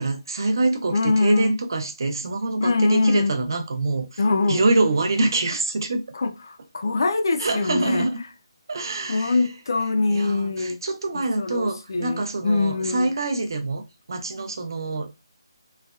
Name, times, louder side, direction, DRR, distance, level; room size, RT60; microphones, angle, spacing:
voice 1, 0.0-4.2 4.5-6.0 7.4-8.2 8.7-9.4 10.1-15.3, right 2 dB, 50° right, 0.6 m, -25 dB
voice 2, 0.9-1.5 2.6-3.4 4.2-4.6 6.1-8.1 9.1-10.8 11.4-13.1, left 3 dB, 50° left, 0.4 m, -23 dB
3.2 x 2.1 x 2.3 m
hypercardioid pair, 170°, 3 cm